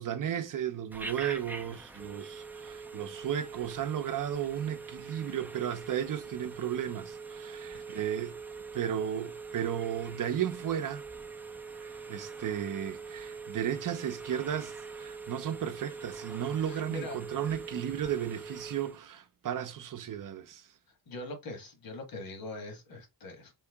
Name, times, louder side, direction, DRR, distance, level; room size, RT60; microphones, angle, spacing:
voice 1, 0.0-8.4 8.7-11.0 11.8-20.6, right 9 dB, 55° right, 0.6 m, -34 dB
Telephone, 0.9-19.0, right 4 dB, 5° right, 0.4 m, -43 dB
voice 2, 16.6-17.2 21.1-23.5, left 2 dB, 65° left, 1.5 m, -42 dB
4.5 x 2.8 x 3.4 m
wide cardioid pair, 160°, 38 cm